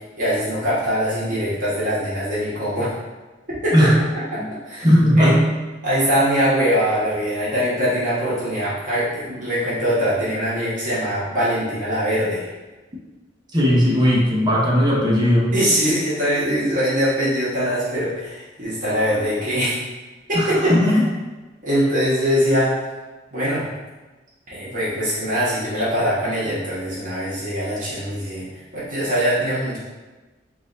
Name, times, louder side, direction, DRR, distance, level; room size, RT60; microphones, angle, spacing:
voice 1, 0.2-2.9 3.6-3.9 4.3-4.4 4.6-4.9 5.2-5.4 5.8-12.4 15.5-19.8 20.3-20.9 21.6-22.7 23.3-23.6 24.5-28.5 28.7-29.8, equal, 45° right, -10 dB, 1.3 m, -22 dB
voice 2, 3.7-4.0 4.4-4.5 4.8-5.4 13.5-15.5 20.3-21.0, equal, 25° right, -4 dB, 0.8 m, -17 dB
3.9 x 2.5 x 3.9 m, 1.2 s
head